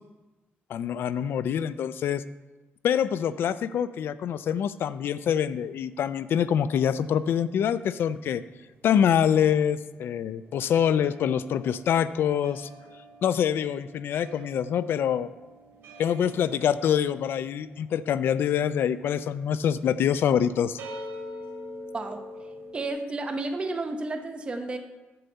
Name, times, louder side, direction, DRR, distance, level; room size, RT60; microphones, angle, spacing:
voice 1, 0.7-2.2 2.8-8.4 8.8-12.7 13.2-15.3 16.0-20.8, left 9 dB, 65° left, 15 dB, 0.3 m, -25 dB
sound 1, 5.4-7.9 8.1-22.9, equal, 85° right, 2.0 m, -46 dB
voice 2, 22.7-24.8, right 2 dB, 25° right, 5 dB, 0.7 m, -31 dB
9.3 x 4.1 x 6.7 m, 1.2 s
cardioid pair, 140°, 4 cm